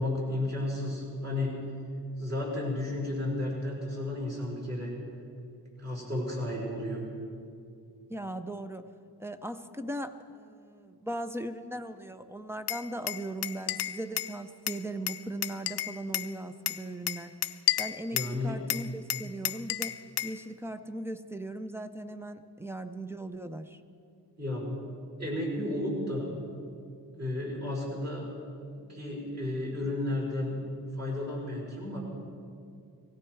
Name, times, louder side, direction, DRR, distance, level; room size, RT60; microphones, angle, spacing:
voice 1, 0.0-1.6 2.2-4.9 5.8-7.0 18.1-18.6 24.4-24.8 25.2-26.4 27.2-28.3 28.7-30.6 30.9-32.0, left 1 dB, 40° right, -4 dB, 5.3 m, -33 dB
voice 2, 8.1-8.9 9.2-17.3 17.8-20.0 20.2-23.8, right 1 dB, 5° right, 10 dB, 0.5 m, -38 dB
Glass, 12.7-14.3 14.7-16.3 16.7-18.4 18.7-20.4, left 13 dB, 75° left, 0.5 m, -32 dB
17.5 x 17.0 x 4.7 m, 2.5 s
wide cardioid pair, 140°, 41 cm